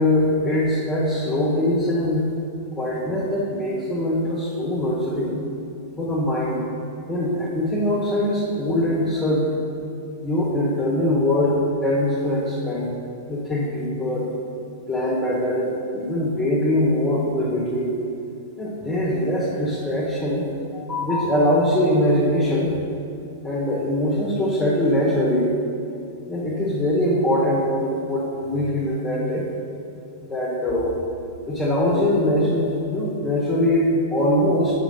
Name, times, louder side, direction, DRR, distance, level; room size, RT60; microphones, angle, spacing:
voice 1, 0.0-2.2 2.8-5.4 6.0-6.6 7.1-9.4 10.2-12.9 13.3-14.3 14.9-17.9 18.6-22.7 23.4-25.5 26.3-29.4 30.3-30.9 31.5-34.7, left 1 dB, 5° left, -7 dB, 1.3 m, -22 dB
6.1 x 5.2 x 5.4 m, 2.7 s
hypercardioid pair, 135°, 0 cm